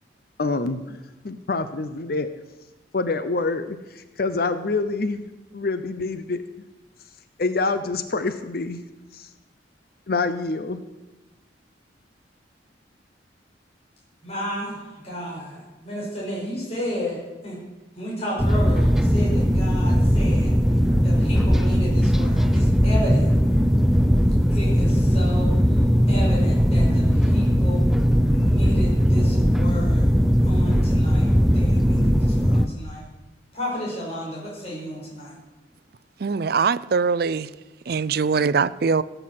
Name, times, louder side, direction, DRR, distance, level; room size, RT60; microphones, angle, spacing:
voice 1, 0.4-1.0 1.2-2.3 2.9-5.2 5.5-6.4 7.4-8.8 9.1-9.3 10.1-10.8, left 3 dB, 55° left, 11 dB, 0.7 m, -26 dB
voice 2, 14.2-17.6 18.0-20.5 21.0-23.3 24.5-25.5 26.1-27.8 28.3-30.1 30.4-31.3 31.5-33.1 33.5-35.3, equal, 35° left, -5 dB, 5.7 m, -32 dB
sound 1, 18.4-32.7, equal, ahead, 0.6 m, -19 dB
voice 3, 36.2-37.5 37.9-39.0, right 5 dB, 60° right, 16 dB, 0.5 m, -22 dB
16.5 x 7.9 x 7.6 m, 1.1 s
head